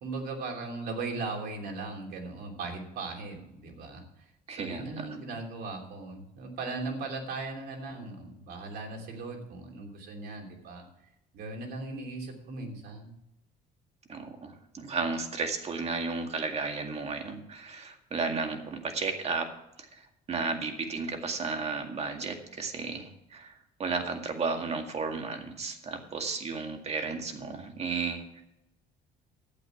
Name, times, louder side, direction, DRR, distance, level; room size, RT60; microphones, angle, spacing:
voice 1, 0.0-10.8 11.3-13.1, right 3 dB, 70° right, 1 dB, 3.0 m, -38 dB
voice 2, 4.5-5.1 14.1-19.5 19.8-23.5 23.8-28.4, right 4 dB, 40° right, 4 dB, 2.1 m, -33 dB
12.0 x 8.5 x 6.0 m, 0.85 s
cardioid pair, 110°, 17 cm